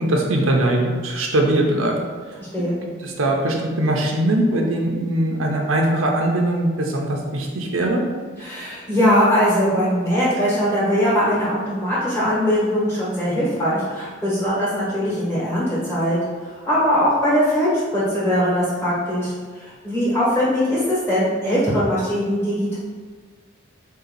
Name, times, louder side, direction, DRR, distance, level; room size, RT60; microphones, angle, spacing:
voice 1, 0.0-1.9 3.0-8.0, right 1 dB, 85° right, 1 dB, 0.6 m, -21 dB
voice 2, 8.4-16.2 16.4-19.3 19.6-22.8, equal, 10° left, -8 dB, 1.2 m, -21 dB
3.7 x 2.8 x 4.0 m, 1.5 s
head